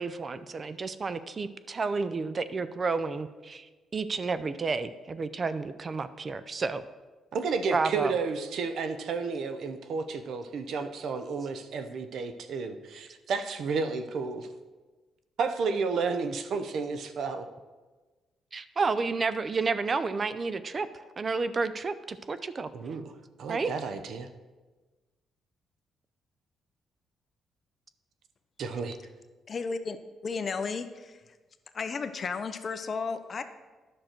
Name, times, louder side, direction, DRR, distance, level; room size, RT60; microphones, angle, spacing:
voice 1, 0.0-3.7 3.9-6.8 7.7-8.2 18.5-20.9 21.2-22.7 23.5-23.7, right 4 dB, 35° right, 13 dB, 0.4 m, -31 dB
voice 2, 7.3-14.5 15.4-17.5 22.7-23.1 23.4-24.3 28.6-29.0, right 4 dB, 70° right, 9 dB, 0.7 m, -32 dB
voice 3, 29.5-30.0 30.2-31.3 31.7-33.4, left 4 dB, 40° left, 10 dB, 0.6 m, -33 dB
10.5 x 6.4 x 4.4 m, 1.3 s
cardioid pair, 95°, 0 cm